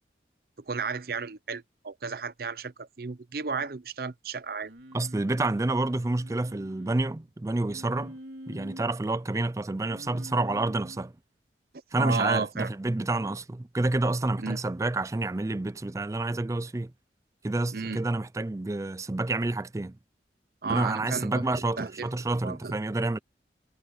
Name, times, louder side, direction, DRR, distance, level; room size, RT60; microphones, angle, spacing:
voice 1, 0.7-4.7 12.0-12.7 14.4-14.6 17.7-18.0 20.6-22.1 22.4-22.7, right 4 dB, 55° right, 0.6 m, -33 dB
Singing, 4.6-7.1 7.7-8.9 9.8-11.1 13.0-13.4, equal, 70° right, 3.4 m, -46 dB
voice 2, 4.9-8.1 8.5-11.1 11.9-16.9 17.4-19.9 20.7-23.2, right 2 dB, 15° right, 0.4 m, -28 dB
head